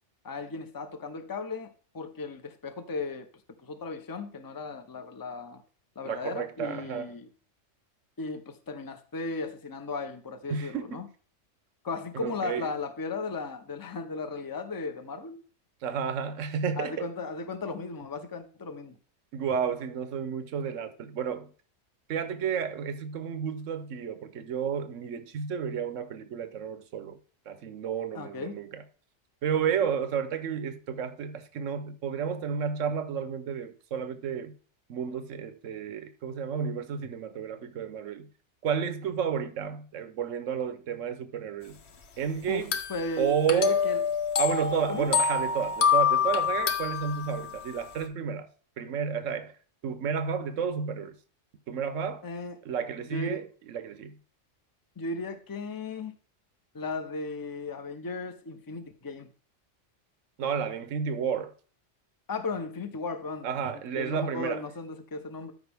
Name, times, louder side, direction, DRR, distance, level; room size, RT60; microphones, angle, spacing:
voice 1, 0.2-3.3 3.6-5.6 6.0-7.3 8.2-11.1 11.8-15.4 16.8-19.0 28.1-28.5 42.5-44.0 44.9-45.1 52.2-52.6 53.1-53.4 55.0-56.1 56.7-59.3 62.3-63.5 64.0-65.5, left 3 dB, 20° left, 0.7 m, -36 dB
voice 2, 6.0-7.1 10.5-11.0 12.1-12.7 15.8-17.1 19.3-21.5 22.1-27.2 27.5-28.8 29.4-34.5 34.9-38.3 38.6-41.8 42.2-42.8 43.2-43.8 44.4-48.5 48.8-49.5 49.8-51.2 51.7-52.2 52.6-54.1 60.4-61.5 63.4-64.6, right 7 dB, 85° right, 1.2 m, -31 dB
sound 1, 42.7-47.7, left 7 dB, 60° left, 1.2 m, -27 dB
13.0 x 5.1 x 3.5 m
omnidirectional pair, 1.3 m